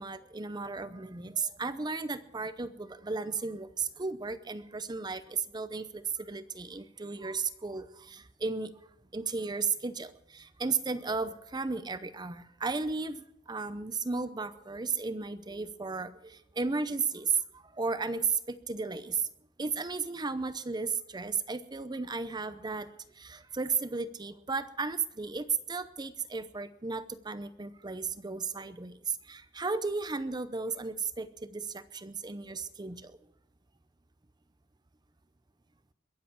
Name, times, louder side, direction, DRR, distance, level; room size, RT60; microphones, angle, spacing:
voice 1, 0.0-8.7 9.1-19.3 19.6-33.2, right 4 dB, 20° right, 13 dB, 0.7 m, -34 dB
22.5 x 7.6 x 7.1 m, 0.81 s
head